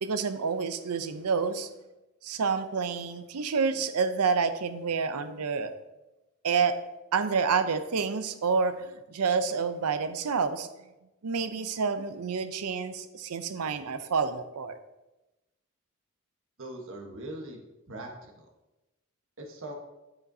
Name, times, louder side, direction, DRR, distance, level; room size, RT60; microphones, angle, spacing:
voice 1, 0.0-1.7 2.2-5.7 6.4-6.8 7.1-10.7 11.2-14.7, right 5 dB, 85° right, 10 dB, 0.6 m, -28 dB
voice 2, 16.6-17.6 17.9-18.5 19.4-19.7, right 1 dB, 60° right, 2 dB, 1.2 m, -41 dB
10.5 x 5.0 x 2.7 m, 1.0 s
head